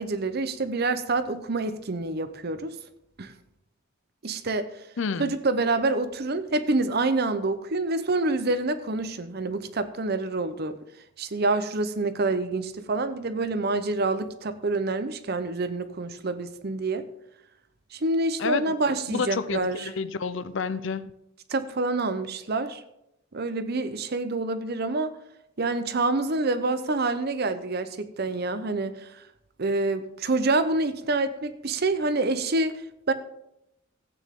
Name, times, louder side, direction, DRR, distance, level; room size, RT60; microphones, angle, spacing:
voice 1, 0.0-2.8 3.2-3.3 4.2-4.7 5.2-10.8 11.2-17.1 17.9-19.9 21.5-22.8 23.3-25.1 25.6-29.2 29.6-33.1, right 2 dB, 50° right, 12 dB, 0.8 m, -27 dB
voice 2, 5.0-5.3 18.4-18.7 19.1-21.1, left 5 dB, 65° left, 14 dB, 0.5 m, -29 dB
14.5 x 8.8 x 3.7 m, 0.83 s
head